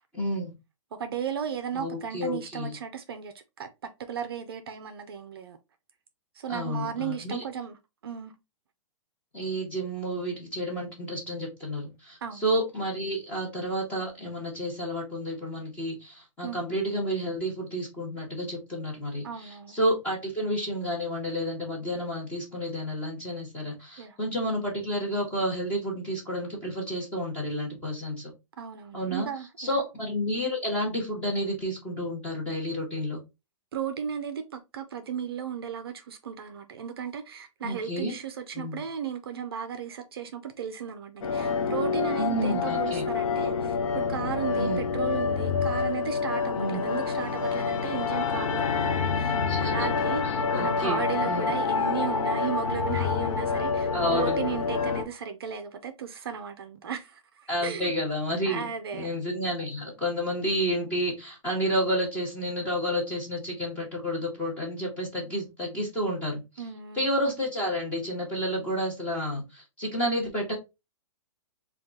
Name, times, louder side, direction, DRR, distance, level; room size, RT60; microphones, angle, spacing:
voice 1, 0.1-0.5 1.7-2.7 6.5-7.4 9.3-28.3 28.9-29.3 29.6-33.2 37.6-38.2 38.5-38.8 42.1-43.1 44.6-44.8 46.5-46.9 49.5-49.9 50.5-51.5 53.9-54.4 57.5-66.4 67.0-70.5, equal, 10° left, 0.9 m, -30 dB
voice 2, 0.9-3.7 4.0-5.6 6.4-7.8 8.0-8.3 12.2-12.4 16.4-16.6 19.2-19.8 24.0-24.2 28.6-29.8 33.7-50.2 50.5-57.9 58.5-59.1 66.6-67.1, right 7 dB, 45° right, 0.5 m, -35 dB
sound 1, 41.2-55.0, left 5 dB, 80° left, 0.7 m, -27 dB
3.6 x 2.3 x 3.7 m
hypercardioid pair, 175°, 17 cm